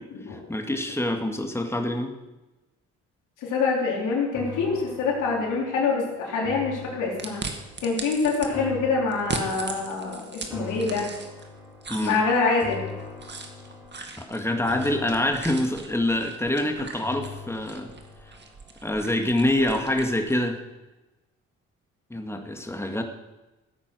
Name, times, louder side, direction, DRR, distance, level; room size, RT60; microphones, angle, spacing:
voice 1, 0.3-2.1 11.9-12.2 14.2-17.9 18.8-20.6 22.1-23.0, left 1 dB, 10° left, 4 dB, 2.0 m, -26 dB
voice 2, 3.4-7.4 7.8-11.1 12.0-12.8, left 4 dB, 90° left, -3 dB, 4.0 m, -25 dB
sound 1, 4.3-19.6 20.0-20.1, left 4 dB, 10° right, 3.4 m, -42 dB
sound 2, 7.2-8.5 9.1-11.5 11.8-20.4, right 4 dB, 35° right, 2.2 m, -39 dB
15.5 x 8.6 x 6.3 m, 1.1 s
cardioid pair, 90°, 30 cm